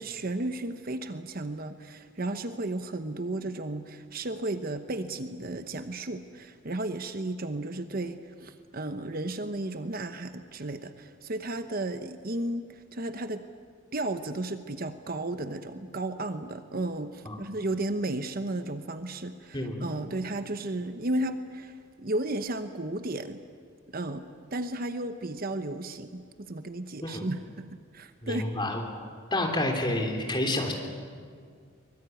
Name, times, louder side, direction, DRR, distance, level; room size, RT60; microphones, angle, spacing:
voice 1, 0.0-13.4 13.9-23.4 23.9-24.2 24.5-28.4, right 2 dB, 45° right, 9 dB, 1.0 m, -34 dB
voice 2, 28.2-28.8 29.3-30.7, left 1 dB, 20° left, 3 dB, 3.4 m, -29 dB
23.5 x 21.5 x 9.3 m, 2.1 s
head